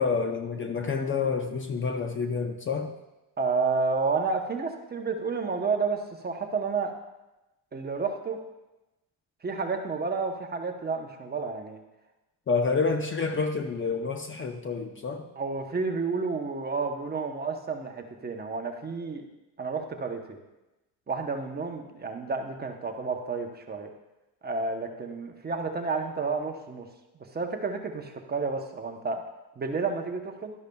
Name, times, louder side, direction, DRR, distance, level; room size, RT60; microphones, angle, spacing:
voice 1, 0.0-2.9 12.5-15.2, left 4 dB, 30° left, 6 dB, 0.7 m, -28 dB
voice 2, 3.4-6.9 7.7-8.4 9.4-11.8 15.4-19.3 19.6-20.4 21.1-23.9 24.4-26.9 27.3-29.2 29.6-30.5, right 4 dB, 25° right, 4 dB, 0.9 m, -30 dB
12.0 x 10.5 x 2.3 m, 1.0 s
cardioid pair, 120°, 40 cm